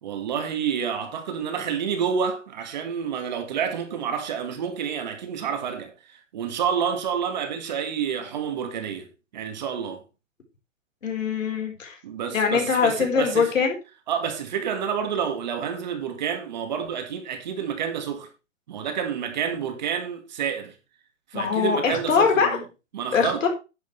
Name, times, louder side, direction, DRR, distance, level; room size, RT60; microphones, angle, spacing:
voice 1, 0.0-5.9 6.3-9.1 9.3-10.0 12.0-13.5 14.1-18.3 18.7-20.7 21.3-22.6 22.9-23.4, right 7 dB, 35° right, 1.9 m, -29 dB
voice 2, 11.0-12.0 12.3-13.8 21.3-22.5 23.1-23.5, left 6 dB, 80° left, 4.5 m, -22 dB
10.5 x 9.6 x 3.3 m
hypercardioid pair, 175°, 38 cm